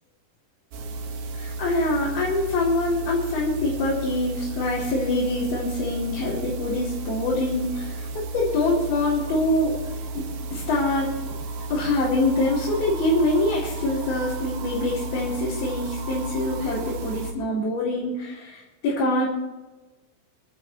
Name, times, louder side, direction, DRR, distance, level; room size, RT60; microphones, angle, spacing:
sound 1, 0.7-17.3, right 3 dB, 75° right, 3.5 m, -33 dB
voice 1, 1.3-9.7 10.1-10.2 10.5-11.1 11.7-19.3, left 2 dB, 85° left, -7 dB, 6.0 m, -25 dB
28.0 x 12.0 x 3.2 m, 1.2 s
omnidirectional pair, 4.2 m